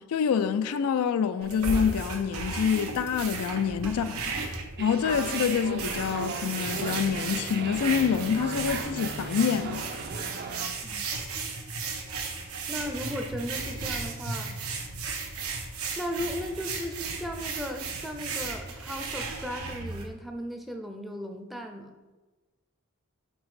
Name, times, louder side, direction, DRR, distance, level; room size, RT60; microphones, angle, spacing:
voice 1, 0.0-4.3 4.8-10.0, left 7 dB, 90° left, 0.3 m, -27 dB
sound 1, 1.4-20.0, right 4 dB, 90° right, 1.0 m, -35 dB
voice 2, 3.8-4.2 10.8-11.2 12.7-14.6 16.0-21.9, equal, ahead, 0.5 m, -36 dB
sound 2, 4.8-10.7, right 4 dB, 50° right, 0.5 m, -37 dB
5.2 x 3.9 x 4.8 m
head